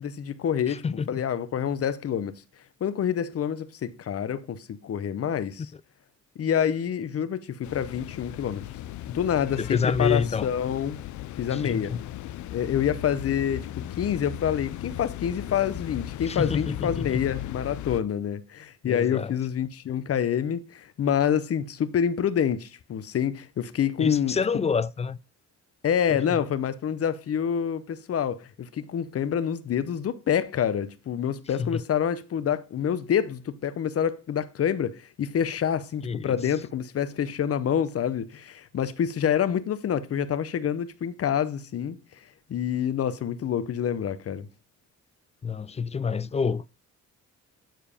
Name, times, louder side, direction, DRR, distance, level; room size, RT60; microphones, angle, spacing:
voice 1, 0.0-2.4 2.8-5.7 6.4-8.6 9.1-11.0 11.4-11.9 12.5-13.7 14.0-24.4 25.8-42.0 42.5-44.5, left 8 dB, 50° left, 0.9 m, -27 dB
voice 2, 0.7-1.2 9.6-10.5 11.5-12.0 16.2-17.2 18.8-19.3 24.0-25.2 26.1-26.4 31.6-31.8 36.0-36.4 45.4-46.7, left 6 dB, 20° left, 0.3 m, -28 dB
sound 1, 7.6-18.0, left 13 dB, 70° left, 0.6 m, -37 dB
9.1 x 4.7 x 5.1 m
cardioid pair, 90°, 30 cm